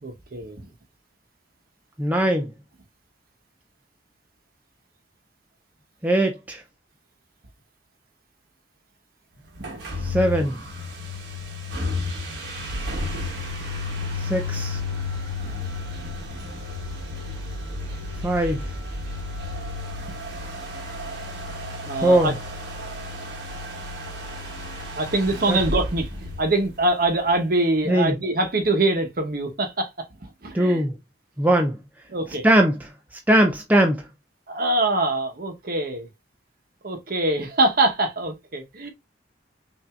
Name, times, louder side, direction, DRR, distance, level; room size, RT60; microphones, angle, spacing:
voice 1, 0.0-0.6 9.6-9.8 15.4-15.6 21.8-22.3 25.0-29.9 30.2-30.8 32.1-32.4 34.5-36.1 36.8-38.9, right 2 dB, 50° right, 0.9 m, -24 dB
voice 2, 2.0-2.5 6.0-6.6 10.0-10.6 14.2-14.8 18.2-18.6 22.0-22.4 25.5-25.6 27.8-28.1 30.5-30.9 31.4-31.8 32.4-32.9 33.3-34.0, right 1 dB, 10° right, 0.4 m, -20 dB
sound 1, 9.6-27.1, left 2 dB, 70° right, 1.2 m, -32 dB
5.7 x 2.6 x 2.3 m
head